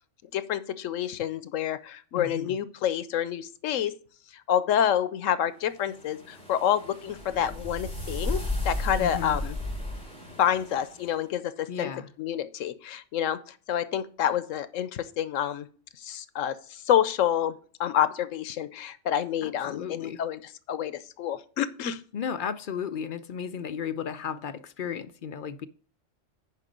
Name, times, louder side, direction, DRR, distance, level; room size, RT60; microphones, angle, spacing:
voice 1, 0.3-3.9 4.5-9.6 10.4-11.9 12.2-15.7 16.0-17.5 17.8-22.0, left 10 dB, 85° left, 15 dB, 1.1 m, -28 dB
voice 2, 2.1-2.6 9.0-9.4 11.7-12.1 19.4-20.2 22.1-25.7, left 7 dB, 55° left, 11 dB, 0.6 m, -34 dB
sound 1, 5.8-11.1, left 1 dB, 5° left, 3.7 m, -34 dB
9.8 x 5.0 x 5.2 m, 0.43 s
omnidirectional pair, 1.3 m